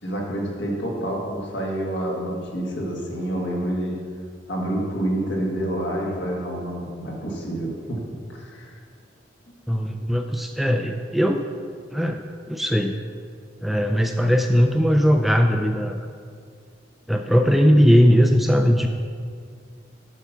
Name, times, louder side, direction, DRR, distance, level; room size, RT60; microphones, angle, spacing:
voice 1, 0.0-4.0 4.5-8.7, right 1 dB, 65° left, -2 dB, 1.8 m, -28 dB
voice 2, 9.7-11.5 11.9-13.0 13.6-16.1 17.1-18.9, equal, ahead, 4 dB, 0.3 m, -19 dB
8.1 x 5.9 x 5.6 m, 2.1 s
head